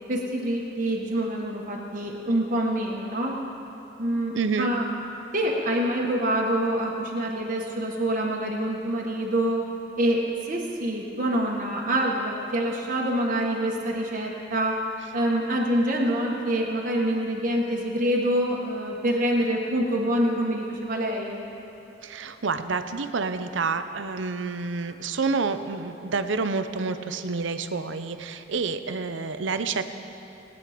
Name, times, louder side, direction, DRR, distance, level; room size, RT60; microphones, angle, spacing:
voice 1, 0.1-3.4 4.0-4.9 5.3-9.6 10.0-14.8 15.1-21.4, right 1 dB, 45° right, -2 dB, 1.4 m, -26 dB
voice 2, 4.3-4.7 22.0-29.8, right 4 dB, 70° right, 10 dB, 0.7 m, -28 dB
19.5 x 9.5 x 5.1 m, 2.9 s
head